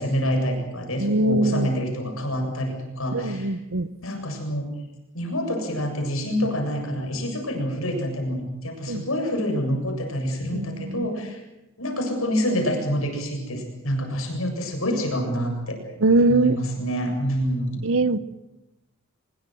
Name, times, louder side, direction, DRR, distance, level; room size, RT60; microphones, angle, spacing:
voice 1, 0.0-3.5 4.0-4.7 5.1-11.4 11.8-15.8 16.3-17.8, equal, 70° left, 3 dB, 7.5 m, -27 dB
voice 2, 1.0-1.7 3.1-3.9 8.9-9.0 10.5-11.1 16.0-16.6 17.8-18.2, right 2 dB, 65° right, 16 dB, 1.0 m, -22 dB
24.5 x 22.0 x 7.9 m, 0.98 s
head